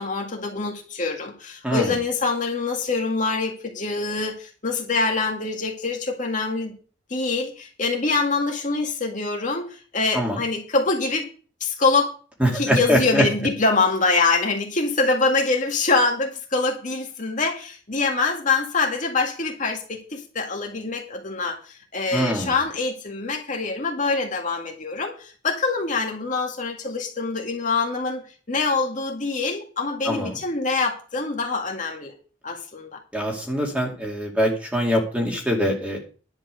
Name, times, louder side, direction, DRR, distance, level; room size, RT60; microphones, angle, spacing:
voice 1, 0.0-6.8 7.1-11.3 11.6-12.1 12.5-32.1 32.4-33.0, left 3 dB, 40° left, 1 dB, 1.9 m, -25 dB
voice 2, 12.4-13.2 22.1-22.5 30.0-30.4 33.1-36.0, equal, 5° right, 0 dB, 2.5 m, -23 dB
11.0 x 5.9 x 6.6 m, 0.38 s
head